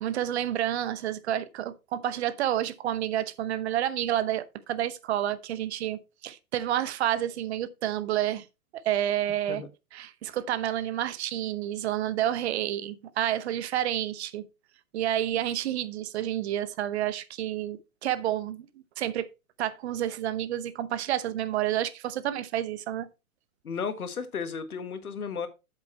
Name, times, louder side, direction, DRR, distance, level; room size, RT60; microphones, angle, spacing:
voice 1, 0.0-8.4 8.7-9.6 9.9-14.5 14.9-18.7 19.0-19.3 19.6-23.1, right 11 dB, 45° right, 0.9 m, -29 dB
voice 2, 23.6-25.5, left 6 dB, 75° left, 1.5 m, -34 dB
8.6 x 7.4 x 3.2 m
figure-of-eight pair, 115°, 44 cm